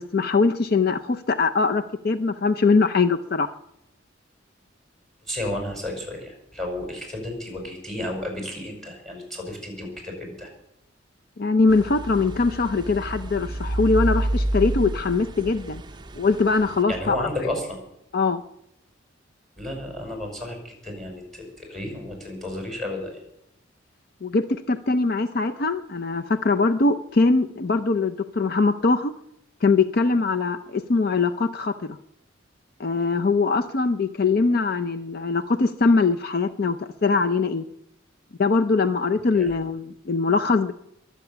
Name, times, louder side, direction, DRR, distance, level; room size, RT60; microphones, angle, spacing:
voice 1, 0.0-3.5 11.4-15.8 16.2-17.3 18.1-18.4 24.2-29.1 29.6-32.0 32.8-37.6 38.4-40.7, left 3 dB, 50° left, 10 dB, 0.6 m, -22 dB
voice 2, 5.3-10.5 16.9-17.8 19.6-23.2 39.3-39.5, left 1 dB, ahead, 2 dB, 5.7 m, -32 dB
sound 1, 11.7-16.8, right 1 dB, 25° right, 0.6 m, -29 dB
22.5 x 8.3 x 7.0 m, 0.81 s
head